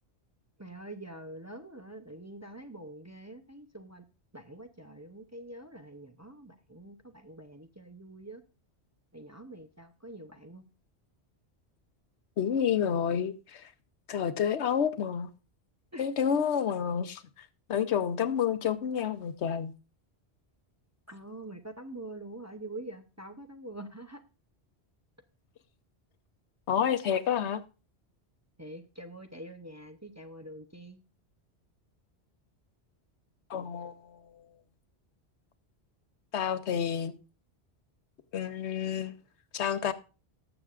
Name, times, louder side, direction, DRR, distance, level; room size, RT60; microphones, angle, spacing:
voice 1, 0.6-4.0 4.3-8.4 9.1-10.6 15.9-16.0 21.1-24.2 28.6-31.0, right 1 dB, 20° right, 0.6 m, -45 dB
voice 2, 12.4-13.7 14.1-15.3 16.0-19.7 26.7-27.6 33.5-34.6 36.3-37.1 38.3-39.2 39.5-39.9, left 8 dB, 90° left, 1.1 m, -29 dB
19.0 x 6.9 x 2.5 m
omnidirectional pair, 1.1 m